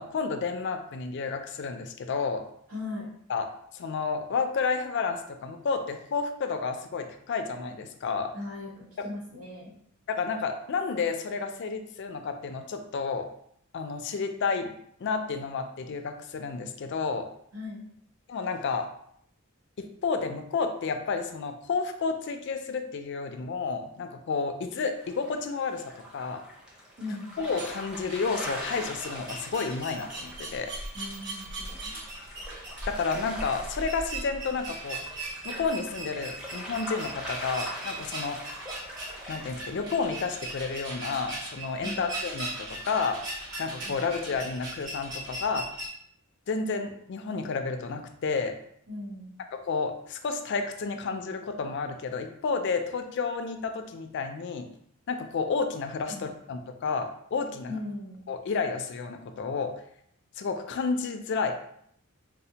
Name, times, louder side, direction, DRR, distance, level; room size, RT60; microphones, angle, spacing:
voice 1, 0.0-2.4 3.3-3.5 3.7-8.3 10.1-13.3 13.7-14.7 15.0-17.3 18.3-18.9 19.8-26.4 27.4-30.7 32.9-35.0 35.4-38.4 39.3-43.2 43.6-45.7 46.5-48.6 49.7-54.7 55.1-57.8 58.3-59.7 60.4-61.5, left 4 dB, 55° left, 6 dB, 0.3 m, -31 dB
voice 2, 2.7-3.1 8.3-9.7 17.5-17.8 27.0-27.4 30.9-31.9 41.8-42.1 43.8-44.2 48.9-49.4 56.1-56.3 57.7-58.2, left 2 dB, 85° right, -5 dB, 1.2 m, -38 dB
sound 1, 25.0-44.3, equal, 5° right, 0.6 m, -43 dB
sound 2, 27.5-45.9, right 2 dB, 55° right, 0.9 m, -39 dB
4.1 x 2.1 x 2.8 m, 0.68 s
head